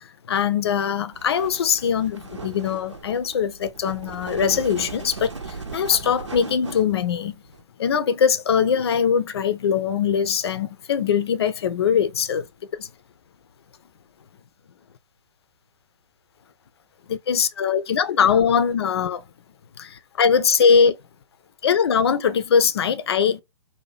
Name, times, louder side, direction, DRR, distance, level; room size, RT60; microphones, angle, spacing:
voice 1, 0.0-7.4 7.8-12.4 12.8-12.9 17.1-19.2 19.8-21.0 21.6-23.4, left 7 dB, 60° left, 0.4 m, -21 dB
sound 1, 1.1-7.6, right 4 dB, 85° right, 0.8 m, -38 dB
2.7 x 2.1 x 3.0 m
figure-of-eight pair, 125°, 15 cm